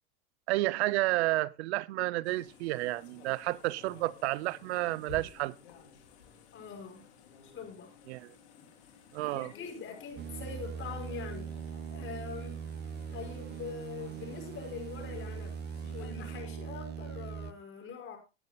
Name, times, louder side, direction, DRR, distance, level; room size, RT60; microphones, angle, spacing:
voice 1, 0.5-5.5 8.1-8.3 9.1-9.5, right 19 dB, 80° right, 0.6 m, -31 dB
sound 1, 2.2-16.4, left 6 dB, 90° left, 3.8 m, -55 dB
voice 2, 6.5-7.1 7.5-7.9 9.2-11.5 11.9-12.7 13.1-18.2, left 6 dB, 40° left, 5.6 m, -43 dB
sound 2, 10.2-17.5, right 7 dB, 30° right, 0.8 m, -41 dB
19.0 x 9.6 x 2.2 m
supercardioid pair, 110°, 33 cm